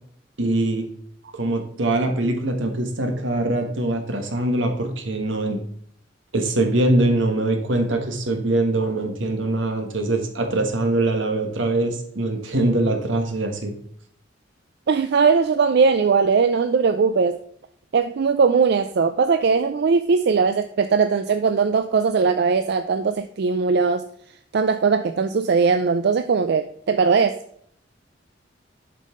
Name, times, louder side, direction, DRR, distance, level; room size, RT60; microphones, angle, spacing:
voice 1, 0.4-0.8 1.3-5.6 6.3-13.7, right 2 dB, 85° right, 5 dB, 1.5 m, -23 dB
voice 2, 14.9-17.4 17.9-24.1 24.5-27.4, right 5 dB, 60° right, 10 dB, 0.4 m, -19 dB
7.5 x 5.5 x 3.8 m, 0.63 s
head